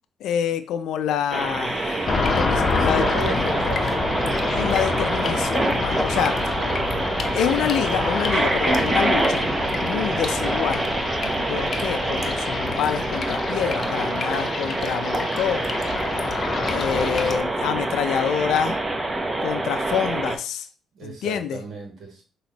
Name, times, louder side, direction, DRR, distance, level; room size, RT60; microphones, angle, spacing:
voice 1, 0.2-3.1 3.4-3.5 4.5-6.4 7.3-9.5 9.8-10.9 11.5-15.7 16.6-18.8 19.4-20.7 21.0-21.6, left 8 dB, 85° left, 9 dB, 0.5 m, -27 dB
sound 1, 1.3-20.4, right 2 dB, 20° right, 0.8 m, -26 dB
sound 2, 2.1-17.4, left 4 dB, 45° left, 0.7 m, -28 dB
voice 2, 2.3-4.1 20.9-22.2, right 4 dB, 65° right, 1 dB, 1.8 m, -34 dB
5.9 x 3.1 x 2.9 m, 0.36 s
cardioid pair, 90°, 0 cm